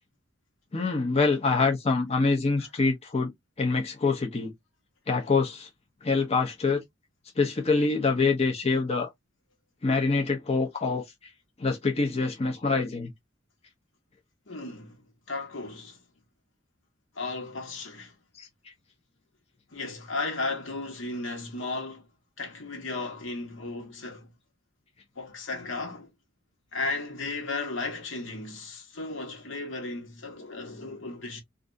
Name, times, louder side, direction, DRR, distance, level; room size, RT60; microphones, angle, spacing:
voice 1, 0.7-3.3 3.6-4.5 5.1-5.7 6.0-6.8 7.4-9.1 9.8-11.0 11.6-13.1 18.4-18.5, left 4 dB, 30° left, 0.7 m, -25 dB
voice 2, 14.5-16.0 17.1-18.1 19.7-22.1 22.4-24.3 25.2-26.1 26.7-31.4, left 3 dB, 75° left, 1.3 m, -35 dB
3.3 x 2.5 x 2.5 m
head